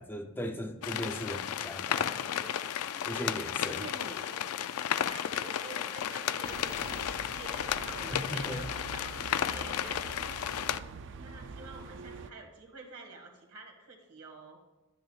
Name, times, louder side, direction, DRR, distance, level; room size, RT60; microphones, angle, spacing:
voice 1, 0.0-2.2 3.0-3.8 8.1-8.6, equal, 10° left, 5 dB, 0.5 m, -38 dB
sound 1, 0.8-10.8, left 9 dB, 75° left, 0.4 m, -33 dB
voice 2, 2.9-3.3 3.6-4.4 5.1-10.9 11.2-14.6, right 3 dB, 85° right, 2 dB, 1.8 m, -48 dB
sound 2, 6.4-12.3, right 4 dB, 55° right, 0.4 m, -45 dB
10.5 x 9.2 x 2.4 m, 1.1 s
head